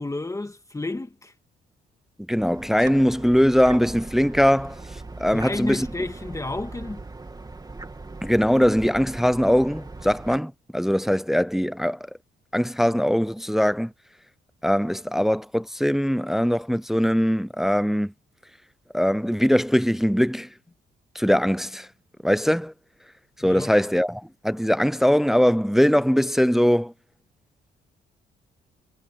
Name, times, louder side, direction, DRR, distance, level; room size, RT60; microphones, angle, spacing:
voice 1, 0.0-1.3 5.2-7.0 23.4-23.7, left 2 dB, 15° left, 1.9 m, -31 dB
voice 2, 2.3-4.8 5.2-5.9 8.2-12.0 12.5-13.9 14.6-18.1 18.9-20.5 21.2-21.9 22.2-22.7 23.4-26.9, equal, ahead, 0.5 m, -21 dB
sound 1, 2.4-10.4, right 3 dB, 20° right, 2.5 m, -39 dB
cardioid pair, 90°, 20 cm